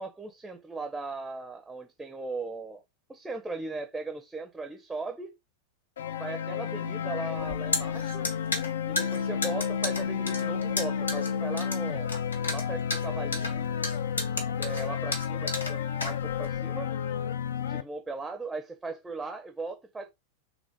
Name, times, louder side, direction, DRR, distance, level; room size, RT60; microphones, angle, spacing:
voice 1, 0.0-2.8 3.1-5.3 6.2-8.3 8.9-12.1 12.5-13.7 14.6-16.9 17.6-20.1, right 3 dB, 10° right, 0.5 m, -38 dB
sound 1, 6.0-17.8, left 7 dB, 65° left, 0.4 m, -31 dB
sound 2, 7.4-16.6, left 2 dB, 80° left, 1.0 m, -33 dB
3.5 x 2.5 x 3.6 m
figure-of-eight pair, 90°, 0 cm